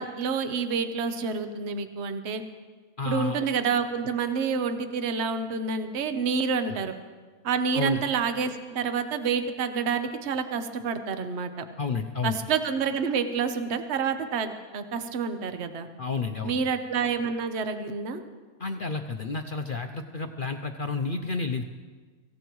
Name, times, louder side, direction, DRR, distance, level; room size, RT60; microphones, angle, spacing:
voice 1, 0.0-2.4 3.0-6.9 7.4-11.5 12.2-15.9 16.4-18.2, right 5 dB, 50° right, 8 dB, 1.1 m, -28 dB
voice 2, 3.0-3.4 6.7-6.8 7.7-8.0 11.8-12.4 16.0-16.7 18.6-21.6, left 4 dB, 60° left, 5 dB, 0.5 m, -30 dB
24.5 x 16.0 x 3.1 m, 1.4 s
omnidirectional pair, 1.7 m